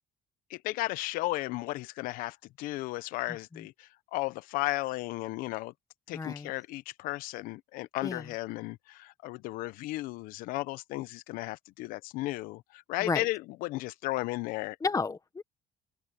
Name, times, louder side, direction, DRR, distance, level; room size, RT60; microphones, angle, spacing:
voice 1, 0.5-5.7 6.1-14.8, left 19 dB, 80° left, 0.9 m, -35 dB
voice 2, 6.1-6.5 8.0-8.2 13.0-13.2 14.8-15.4, left 4 dB, 25° left, 1.2 m, -31 dB
supercardioid pair, 80°, 14 cm